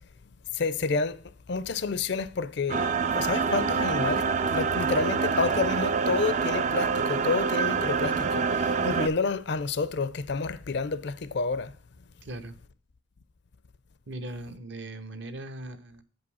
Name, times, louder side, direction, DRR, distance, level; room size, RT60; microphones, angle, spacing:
voice 1, 0.5-1.2 1.5-11.7, left 4 dB, 55° left, 0.5 m, -29 dB
sound 1, 2.7-9.1, right 5 dB, 35° right, 0.4 m, -26 dB
voice 2, 12.2-12.6 14.1-16.0, right 1 dB, 60° right, 0.8 m, -39 dB
7.6 x 5.2 x 5.4 m
head